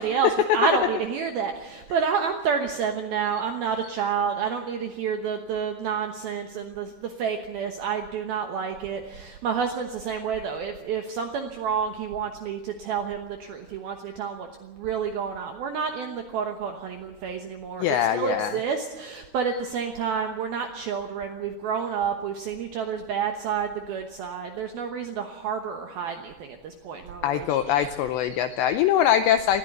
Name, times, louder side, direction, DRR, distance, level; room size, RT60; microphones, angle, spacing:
voice 1, 0.0-27.9, right 6 dB, 75° right, 5 dB, 2.2 m, -29 dB
voice 2, 17.8-18.6 27.2-29.6, left 10 dB, 85° left, 9 dB, 2.5 m, -23 dB
22.0 x 15.0 x 8.0 m, 1.2 s
omnidirectional pair, 6.0 m